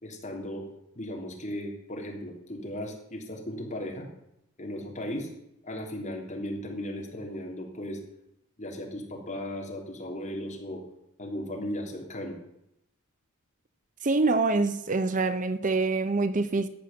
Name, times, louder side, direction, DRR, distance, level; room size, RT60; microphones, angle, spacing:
voice 1, 0.0-0.7 0.9-4.1 4.6-5.3 5.6-8.0 8.6-10.8 11.2-12.4, left 1 dB, 35° left, 3.3 m, -36 dB
voice 2, 14.0-16.7, right 3 dB, 40° right, 0.7 m, -25 dB
13.0 x 8.5 x 7.9 m
head